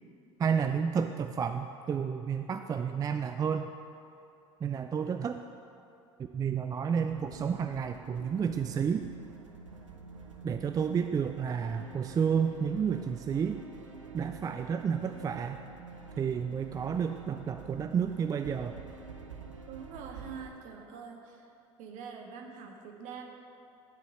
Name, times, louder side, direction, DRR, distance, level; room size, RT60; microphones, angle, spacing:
voice 1, 0.4-3.7 4.6-5.4 6.3-9.1 10.4-13.6 14.1-15.6 16.2-18.8, right 7 dB, 25° right, 7 dB, 0.4 m, -31 dB
sound 1, 7.1-20.5, right 4 dB, 90° right, 0.7 m, -48 dB
voice 2, 19.7-21.4 21.8-23.2, right 6 dB, 55° right, 2 dB, 1.4 m, -45 dB
11.5 x 4.6 x 6.5 m, 2.7 s
hypercardioid pair, 70°, 16 cm